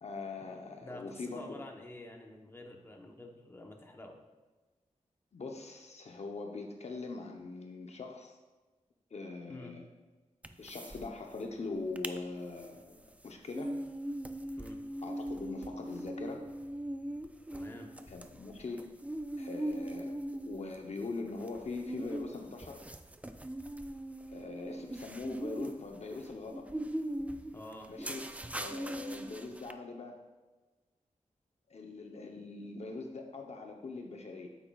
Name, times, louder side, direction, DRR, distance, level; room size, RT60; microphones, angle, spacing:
voice 1, 0.0-1.6 5.3-8.4 9.1-9.8 10.6-13.8 15.0-16.5 18.1-19.0 19.4-20.1 20.4-22.8 24.3-26.7 27.9-28.2 28.5-30.2 31.7-34.5, left 3 dB, 55° left, 2 dB, 0.7 m, -42 dB
voice 2, 0.8-4.2 9.5-9.8 14.6-14.8 17.5-17.9 27.5-27.9, left 1 dB, 15° left, 2 dB, 0.9 m, -48 dB
sound 1, 10.4-11.1 11.3-11.4 11.8-12.2 12.6-29.7, right 1 dB, 10° right, 0.4 m, -40 dB
9.0 x 8.2 x 2.3 m, 1.2 s
wide cardioid pair, 120°, 13 cm